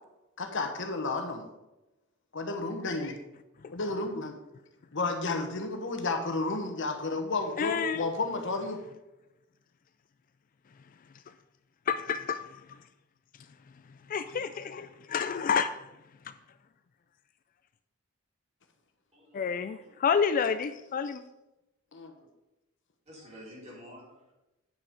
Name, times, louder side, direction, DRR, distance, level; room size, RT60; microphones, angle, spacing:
voice 1, 0.4-1.4 2.3-3.2 3.7-4.4 4.9-8.8 21.9-22.1, left 3 dB, 65° left, 5 dB, 1.2 m, -32 dB
voice 2, 7.6-8.2 11.9-12.6 14.1-15.8 16.2-16.3 19.3-21.2, left 6 dB, 40° left, 11 dB, 0.4 m, -29 dB
voice 3, 19.1-20.0 23.1-24.3, equal, 35° right, -4 dB, 3.4 m, -50 dB
9.2 x 5.8 x 5.1 m, 0.97 s
head